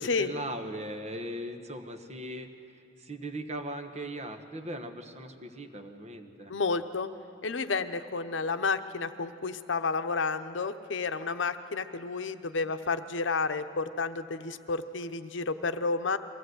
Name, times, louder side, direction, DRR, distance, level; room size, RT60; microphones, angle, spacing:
voice 1, 0.0-6.5, right 1 dB, 35° right, 5 dB, 1.3 m, -39 dB
voice 2, 6.5-7.1 7.4-16.2, left 4 dB, 75° left, 9 dB, 0.8 m, -31 dB
23.0 x 16.0 x 8.0 m, 2.5 s
head